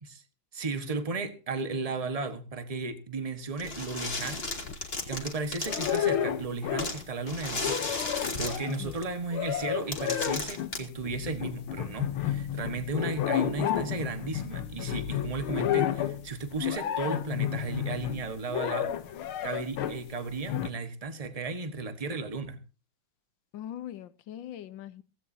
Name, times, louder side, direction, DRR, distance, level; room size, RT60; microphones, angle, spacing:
voice 1, 0.5-4.4 5.1-19.0 19.4-22.6, right 3 dB, 20° right, 1.1 m, -35 dB
sound 1, 3.6-6.1 6.8-9.0 9.6-9.7 9.9-10.8, left 2 dB, 30° left, 2.3 m, -35 dB
sound 2, 4.2-5.3 5.6-7.1 7.4-20.1 20.5-20.7, left 10 dB, 85° left, 1.8 m, -31 dB
voice 2, 8.8-9.1 23.5-25.0, left 11 dB, 70° left, 1.5 m, -41 dB
17.0 x 16.0 x 2.7 m
omnidirectional pair, 2.2 m